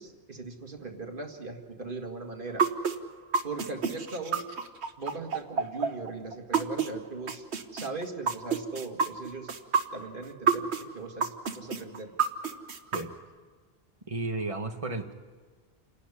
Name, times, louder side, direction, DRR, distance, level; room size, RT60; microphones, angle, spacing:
voice 1, 0.0-2.7 3.4-4.4 5.0-7.4 7.7-9.5 9.9-12.1, right 3 dB, 50° right, 4 dB, 2.1 m, -39 dB
sound 1, 2.6-6.9 7.3-10.8 11.2-13.0, right 6 dB, 75° right, 1.4 m, -28 dB
voice 2, 14.1-15.1, right 2 dB, 30° right, 5 dB, 1.4 m, -33 dB
28.5 x 11.5 x 9.9 m, 1.5 s
omnidirectional pair, 1.1 m